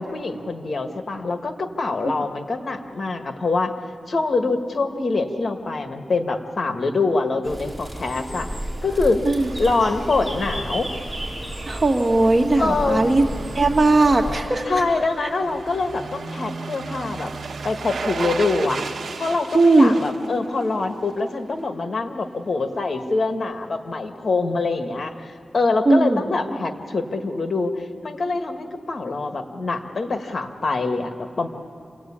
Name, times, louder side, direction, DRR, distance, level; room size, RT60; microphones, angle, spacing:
voice 1, 0.0-3.7 4.1-8.5 8.8-9.2 9.6-10.9 12.6-13.1 14.7-17.3 17.6-18.8 19.2-31.5, left 3 dB, 55° left, 6 dB, 1.7 m, -24 dB
sound 1, 7.4-14.4, right 1 dB, 15° right, 5.0 m, -32 dB
sound 2, 9.4-21.3 21.6-21.7, right 4 dB, 80° right, 1.1 m, -36 dB
voice 2, 11.7-13.2 13.5-14.7 15.2-15.3 19.5-19.9 25.9-26.2, right 2 dB, 40° right, 2 dB, 2.2 m, -17 dB
27.5 x 18.0 x 8.7 m, 2.7 s
cardioid pair, 70°, 0 cm